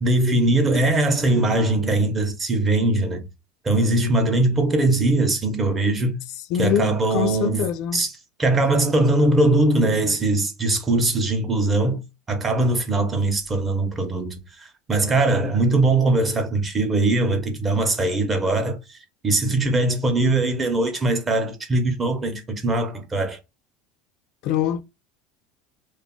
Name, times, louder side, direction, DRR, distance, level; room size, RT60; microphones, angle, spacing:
voice 1, 0.0-3.2 3.6-6.2 6.6-7.7 7.9-8.1 8.4-12.0 12.3-19.0 19.2-23.4, right 2 dB, 20° right, 0.6 m, -21 dB
voice 2, 6.5-8.0 24.4-24.8, left 9 dB, 55° left, 0.3 m, -24 dB
2.3 x 2.0 x 3.6 m
supercardioid pair, 145°, 0 cm